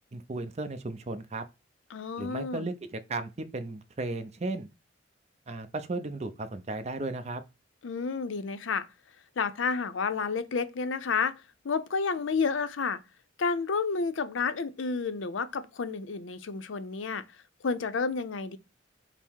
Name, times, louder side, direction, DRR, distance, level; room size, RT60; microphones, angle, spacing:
voice 1, 0.1-1.4 2.2-4.7 5.5-7.4, right 2 dB, 35° right, 0.5 m, -35 dB
voice 2, 1.9-2.7 7.8-8.9 9.4-13.0 13.4-17.2 17.6-18.6, left 5 dB, 80° left, 0.5 m, -30 dB
5.5 x 2.0 x 4.5 m
head